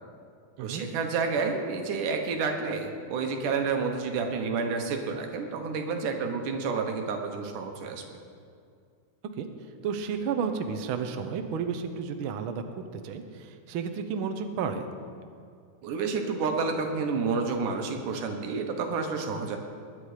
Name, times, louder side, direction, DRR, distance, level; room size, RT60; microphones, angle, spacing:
voice 1, 0.6-8.0 15.8-19.6, right 4 dB, 90° right, 4 dB, 2.8 m, -30 dB
voice 2, 9.8-14.9, right 6 dB, 70° right, 7 dB, 1.2 m, -32 dB
20.5 x 9.5 x 5.0 m, 2.3 s
omnidirectional pair, 3.5 m